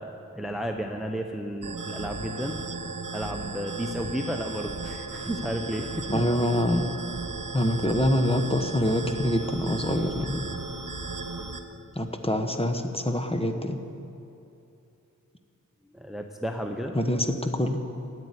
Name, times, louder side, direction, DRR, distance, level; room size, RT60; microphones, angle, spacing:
voice 1, 0.0-2.6 3.1-6.1 11.4-11.5 15.9-16.9, equal, ahead, 4 dB, 0.7 m, -33 dB
sound 1, 1.6-11.6, right 3 dB, 75° right, 1.0 m, -36 dB
voice 2, 6.1-6.9 7.5-10.5 11.9-13.8 16.9-17.8, left 1 dB, 20° left, 5 dB, 1.0 m, -25 dB
12.0 x 8.1 x 9.6 m, 2.8 s
wide cardioid pair, 50°, 32 cm